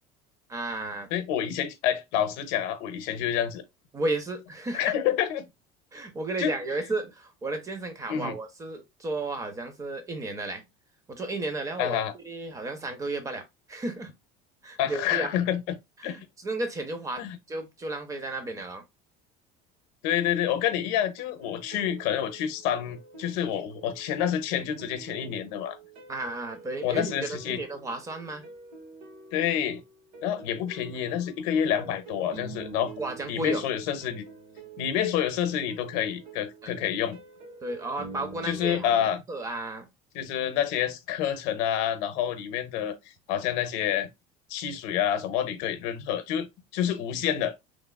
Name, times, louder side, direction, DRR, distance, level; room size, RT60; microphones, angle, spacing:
voice 1, 0.5-1.1 3.9-4.9 5.9-10.6 11.1-14.1 14.6-15.4 16.0-18.8 26.1-28.5 33.0-33.6 36.6-36.7 37.6-38.9 39.3-39.9, right 2 dB, 20° right, 0.5 m, -33 dB
voice 2, 1.1-3.6 4.7-5.5 6.4-6.5 8.1-8.4 11.8-12.1 14.8-15.6 16.0-16.3 17.2-17.4 20.0-25.8 26.8-27.6 29.3-29.8 30.2-32.9 33.3-34.2 34.8-37.2 38.4-39.2 40.1-43.0 43.3-44.1 44.5-46.5 46.7-47.5, left 10 dB, 75° left, 0.6 m, -28 dB
sound 1, 21.2-39.1, right 4 dB, 70° right, 1.7 m, -47 dB
3.1 x 2.3 x 2.2 m
cardioid pair, 155°, 18 cm